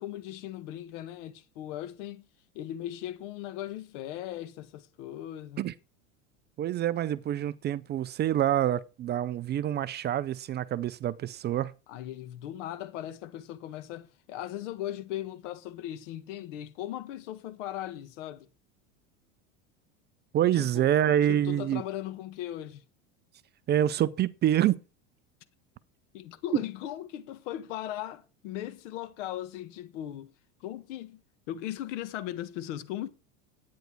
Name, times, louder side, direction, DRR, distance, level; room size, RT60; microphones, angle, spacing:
voice 1, 0.0-2.2 2.5-5.7 11.9-18.5 20.6-20.9 21.3-22.9 26.1-30.3 30.6-31.2 31.5-33.1, left 12 dB, 70° left, 1.3 m, -38 dB
voice 2, 6.6-11.7 20.3-21.8 23.7-24.8 26.5-26.6, right 11 dB, 30° right, 0.4 m, -26 dB
10.5 x 9.4 x 4.5 m
supercardioid pair, 120°, 37 cm